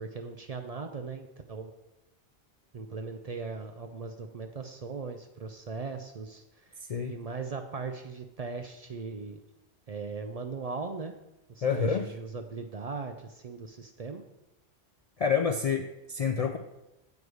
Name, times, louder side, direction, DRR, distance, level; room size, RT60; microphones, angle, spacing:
voice 1, 0.0-1.7 2.7-6.8 7.1-9.4 9.9-11.1 11.5-14.2, right 4 dB, 50° right, 6 dB, 0.5 m, -39 dB
voice 2, 11.6-12.1 15.2-16.6, left 6 dB, 55° left, 6 dB, 0.4 m, -28 dB
7.1 x 4.8 x 6.3 m, 0.93 s
omnidirectional pair, 1.1 m